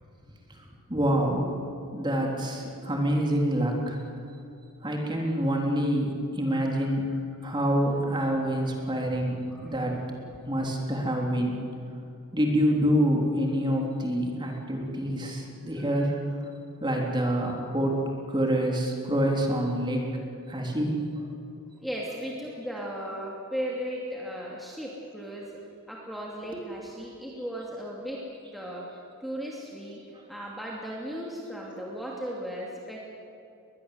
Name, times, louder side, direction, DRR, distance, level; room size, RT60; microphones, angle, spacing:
voice 1, 0.9-1.5 1.9-4.0 4.8-7.1 7.4-9.9 10.5-11.6 12.3-16.1 16.8-18.0 18.3-20.2 20.5-21.0 26.4-26.9 30.1-30.2, equal, 20° right, 0 dB, 3.5 m, -27 dB
voice 2, 6.5-7.2 9.5-9.8 15.9-16.1 21.8-25.5 25.9-28.3 28.5-30.0 30.3-33.0, equal, ahead, -4 dB, 2.7 m, -37 dB
22.0 x 21.0 x 8.0 m, 2.6 s
head